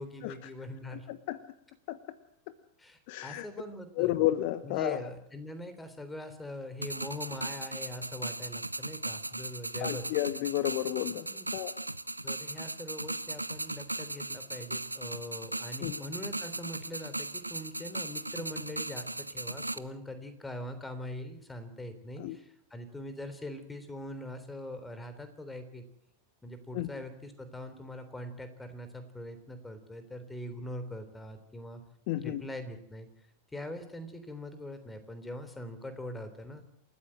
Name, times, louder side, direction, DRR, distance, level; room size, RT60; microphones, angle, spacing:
voice 1, 0.0-1.1 2.8-4.2 4.6-10.0 11.3-11.5 12.2-25.8 26.4-31.8 32.2-33.1 33.5-36.6, left 1 dB, 10° left, 11 dB, 3.4 m, -42 dB
voice 2, 0.9-1.4 1.9-2.0 3.1-3.5 4.0-5.0 9.8-11.3 11.5-11.7 15.8-16.0 22.2-22.4 26.7-26.9 32.1-32.4, left 15 dB, 50° left, 13 dB, 1.1 m, -31 dB
sound 1, 6.8-19.8, right 2 dB, 85° right, 0.7 m, -37 dB
28.5 x 14.0 x 7.7 m, 0.73 s
figure-of-eight pair, 90°, 0 cm